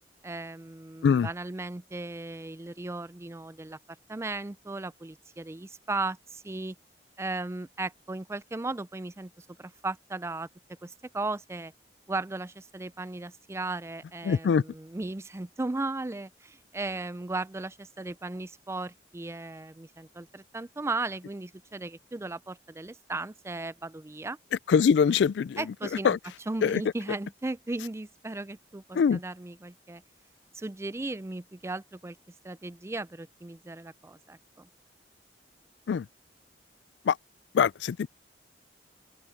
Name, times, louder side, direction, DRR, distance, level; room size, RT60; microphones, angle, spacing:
voice 1, 0.2-3.8 4.1-6.8 7.2-10.5 10.8-11.7 12.1-24.4 25.6-26.2 26.5-30.0 30.5-32.2 32.4-34.7, right 2 dB, 15° right, 0.4 m, -36 dB
voice 2, 14.2-14.6 24.7-25.6 26.0-26.2 26.6-26.8 28.9-29.2 35.9-36.1 37.1-37.2 37.5-38.1, left 6 dB, 70° left, 0.3 m, -23 dB
open air
head